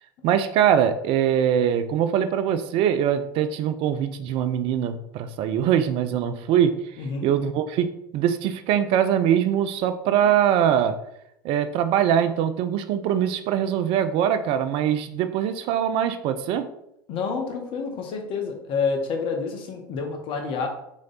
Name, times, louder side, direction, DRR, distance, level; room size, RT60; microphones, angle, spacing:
voice 1, 0.2-6.8 7.2-11.0 11.4-16.7, right 9 dB, 50° right, 10 dB, 0.5 m, -22 dB
voice 2, 17.1-20.7, left 5 dB, 50° left, 3 dB, 1.0 m, -28 dB
4.1 x 3.2 x 3.9 m, 0.79 s
hypercardioid pair, 80°, 12 cm